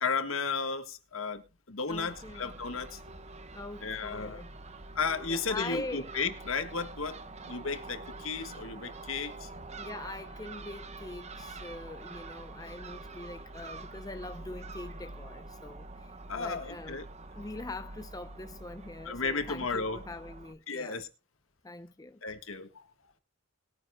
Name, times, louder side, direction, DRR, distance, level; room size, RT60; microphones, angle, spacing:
voice 1, 0.0-3.0 3.8-4.4 4.9-9.5 11.4-11.5 16.3-17.0 19.0-20.0 20.7-21.1 22.2-22.9, left 4 dB, 75° left, 1.5 m, -34 dB
voice 2, 1.9-2.6 3.5-4.5 5.3-6.1 9.7-17.0 17.4-21.0 21.6-22.2, left 2 dB, 20° left, 0.6 m, -43 dB
Crow / Gull seagull, 1.9-20.5, right 2 dB, 30° right, 1.0 m, -46 dB
20.5 x 9.7 x 2.2 m
head